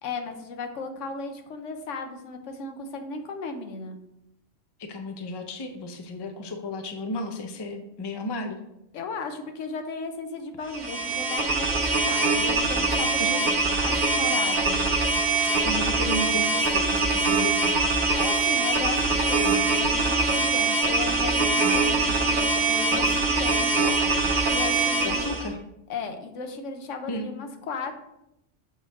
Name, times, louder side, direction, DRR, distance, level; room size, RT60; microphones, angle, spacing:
voice 1, 0.0-4.0 8.9-13.4 13.8-14.8 18.1-23.9 24.5-25.4 25.9-27.9, left 4 dB, 85° left, 6 dB, 1.1 m, -35 dB
voice 2, 4.8-8.6 13.2-13.4 15.6-17.8 25.0-25.6 27.1-27.3, left 2 dB, 30° left, 5 dB, 0.4 m, -33 dB
sound 1, 10.7-25.5, right 3 dB, 50° right, 0.8 m, -23 dB
6.2 x 3.7 x 4.0 m, 0.84 s
omnidirectional pair, 1.3 m